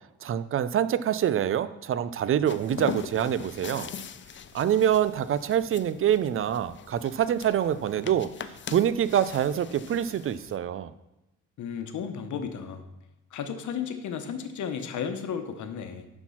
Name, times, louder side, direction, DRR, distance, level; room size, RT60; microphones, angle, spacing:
voice 1, 0.2-3.9 4.5-8.3 8.7-10.9, right 10 dB, 45° right, 15 dB, 0.5 m, -25 dB
sound 1, 2.5-10.6, left 7 dB, 40° left, 0.5 m, -41 dB
voice 2, 11.6-12.9 13.3-16.1, left 7 dB, 75° left, 8 dB, 1.1 m, -34 dB
10.5 x 4.5 x 5.7 m, 0.94 s
cardioid pair, 90°, 30 cm